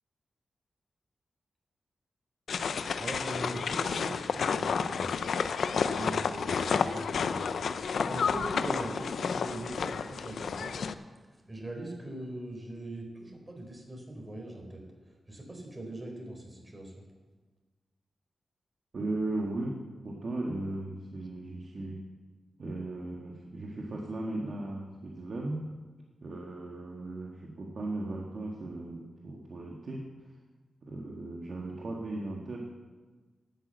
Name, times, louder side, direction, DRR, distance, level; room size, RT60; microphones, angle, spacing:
sound 1, 2.5-10.9, left 6 dB, 85° left, 0.5 m, -31 dB
voice 1, 3.0-5.2 5.9-10.8 11.5-14.8 15.3-16.9, right 1 dB, 25° right, 1 dB, 4.1 m, -41 dB
voice 2, 18.9-22.0 22.6-25.7 26.2-30.1 30.8-32.6, right 2 dB, 60° right, -1 dB, 1.7 m, -37 dB
12.0 x 8.9 x 7.9 m, 1.3 s
cardioid pair, 75°, 0 cm